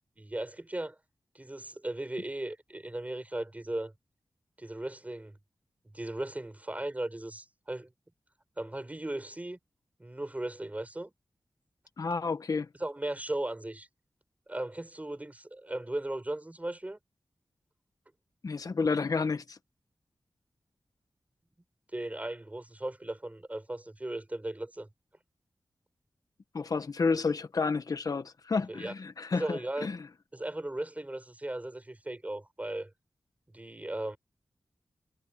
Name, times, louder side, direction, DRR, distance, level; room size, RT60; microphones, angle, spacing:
voice 1, 0.2-1.0 1.3-3.9 4.6-5.4 5.9-7.9 8.6-9.6 10.0-11.1 12.8-13.9 14.5-17.0 21.9-24.9 28.7-28.9 29.3-29.9 30.3-32.9 33.5-34.2, right 1 dB, 20° right, 6.0 m, -37 dB
voice 2, 12.0-12.7 18.4-19.6 26.5-30.1, left 4 dB, 65° left, 1.3 m, -30 dB
wide cardioid pair, 60°, 7 cm